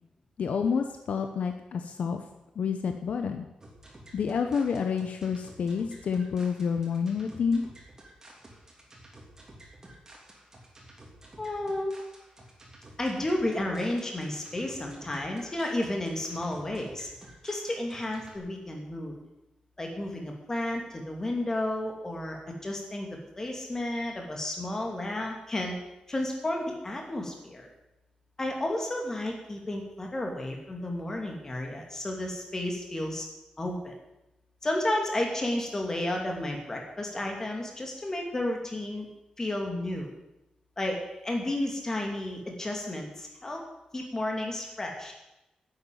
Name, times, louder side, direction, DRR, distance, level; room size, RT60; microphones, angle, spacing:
voice 1, 0.4-2.2 2.6-3.5 4.1-7.6, left 6 dB, 65° left, 6 dB, 0.9 m, -29 dB
sound 1, 3.6-18.4, right 1 dB, 25° right, 2.9 m, -52 dB
voice 2, 11.4-12.0 13.0-17.1 17.4-19.2 19.8-23.1 23.4-25.8 26.1-27.7 28.4-33.3 33.6-33.9 34.6-39.1 39.4-40.1 40.8-43.6 43.9-45.1, left 1 dB, 20° left, 1 dB, 2.7 m, -32 dB
10.5 x 8.3 x 9.4 m, 0.93 s
wide cardioid pair, 175°, 2 cm